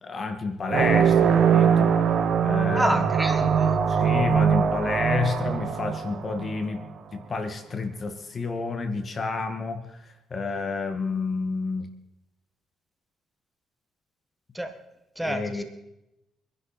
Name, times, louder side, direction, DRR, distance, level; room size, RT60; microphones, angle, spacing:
voice 1, 0.0-2.0 2.4-3.1 3.9-6.8 7.1-10.0 10.3-11.9 15.2-15.6, left 4 dB, 40° left, 8 dB, 2.0 m, -30 dB
sound 1, 0.7-6.8, right 7 dB, 65° right, 1.8 m, -22 dB
voice 2, 2.8-3.7 14.6-14.7 15.2-15.6, right 1 dB, 5° right, 6 dB, 1.7 m, -28 dB
24.5 x 11.0 x 4.5 m, 0.88 s
cardioid pair, 90°, 0 cm